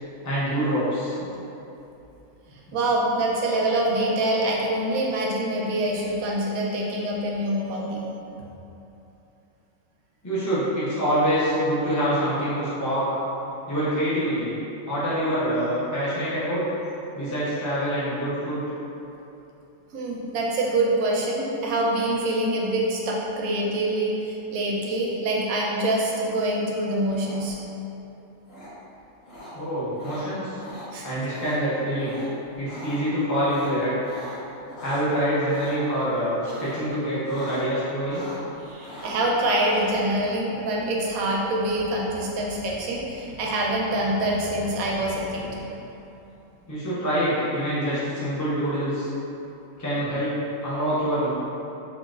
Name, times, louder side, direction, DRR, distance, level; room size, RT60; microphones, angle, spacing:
voice 1, 0.2-1.2 10.2-13.1 13.7-14.6 14.9-16.6 17.1-18.6 29.5-30.6 31.0-32.2 32.6-33.9 34.8-38.2 46.7-49.1 49.8-50.3 50.6-51.3, equal, 20° left, -10 dB, 0.4 m, -25 dB
voice 2, 2.7-8.0 19.9-27.6 30.9-31.1 38.6-45.7, right 1 dB, 80° right, -3 dB, 1.0 m, -25 dB
sound 1, 27.1-27.7 28.5-28.7 29.3-29.5 30.0-30.2 30.6-30.9 31.3-31.6 32.0-32.3 32.5-33.0 33.4-35.0 35.5-35.8 36.4-36.9 37.2-37.7 37.9-38.5 38.8-39.9, equal, 85° left, 1.7 m, -42 dB
3.8 x 2.4 x 2.4 m, 2.9 s
omnidirectional pair, 1.5 m